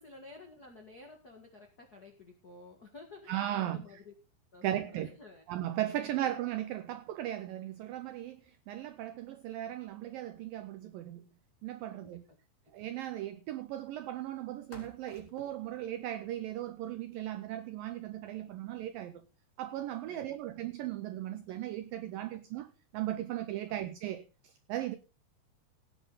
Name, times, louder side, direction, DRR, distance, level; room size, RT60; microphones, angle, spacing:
voice 1, 0.0-4.1 4.5-5.4 6.0-6.3 11.9-12.2 20.1-20.6 23.7-23.8, left 3 dB, 75° left, 0.8 m, -53 dB
voice 2, 3.3-3.8 4.6-5.1 5.5-8.4 8.7-11.2 11.6-12.2 12.7-19.2 19.6-25.0, right 13 dB, 90° right, 1.9 m, -37 dB
sound 1, 7.3-23.6, left 2 dB, 15° left, 3.5 m, -64 dB
17.5 x 8.3 x 4.0 m
omnidirectional pair, 5.0 m